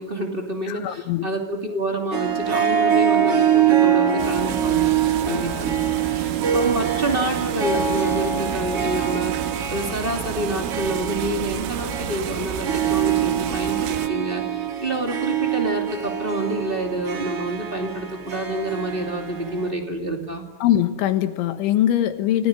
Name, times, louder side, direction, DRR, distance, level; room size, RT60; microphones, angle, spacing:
voice 1, 0.0-4.9 5.3-5.7 6.1-20.4, right 1 dB, 20° right, 3 dB, 1.4 m, -28 dB
voice 2, 0.7-1.3 5.3-5.4 20.6-22.5, left 12 dB, 75° left, 8 dB, 3.6 m, -22 dB
Harp, 2.1-19.7, right 8 dB, 45° right, 2.1 m, -24 dB
sound 1, 4.2-14.1, right 11 dB, 90° right, 3.6 m, -31 dB
30.0 x 18.0 x 9.6 m, 1.1 s
omnidirectional pair, 5.7 m